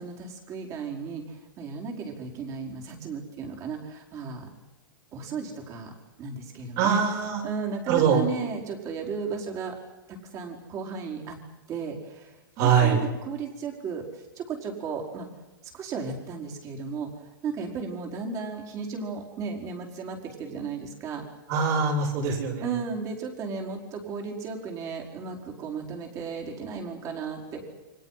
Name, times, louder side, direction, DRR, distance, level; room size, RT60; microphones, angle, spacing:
voice 1, 0.0-4.5 5.1-5.9 6.2-7.0 7.4-9.8 10.1-11.4 11.7-15.3 15.7-17.1 17.4-21.2 22.6-27.7, right 5 dB, 25° right, 1 dB, 5.0 m, -35 dB
voice 2, 6.8-7.4 7.9-8.2 12.6-13.0 21.5-22.7, right 6 dB, 45° right, -1 dB, 7.8 m, -23 dB
30.0 x 24.5 x 5.9 m, 1.1 s
hypercardioid pair, 145°, 12 cm